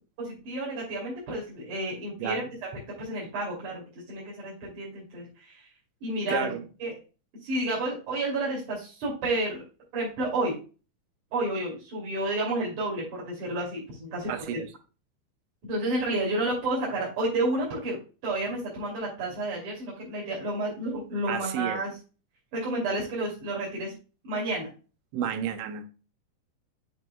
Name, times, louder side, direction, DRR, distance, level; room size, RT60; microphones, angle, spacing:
voice 1, 0.2-2.4 3.0-5.7 6.0-6.5 6.8-6.9 7.4-9.6 9.9-10.6 11.3-14.3 15.6-18.0 18.2-21.9 22.5-24.0 24.2-24.7, right 2 dB, 45° right, -5 dB, 3.7 m, -30 dB
voice 2, 6.3-6.6 14.3-14.7 21.3-21.8 25.1-25.9, right 9 dB, 80° right, 8 dB, 3.2 m, -31 dB
8.6 x 6.4 x 2.2 m, 0.33 s
omnidirectional pair, 5.3 m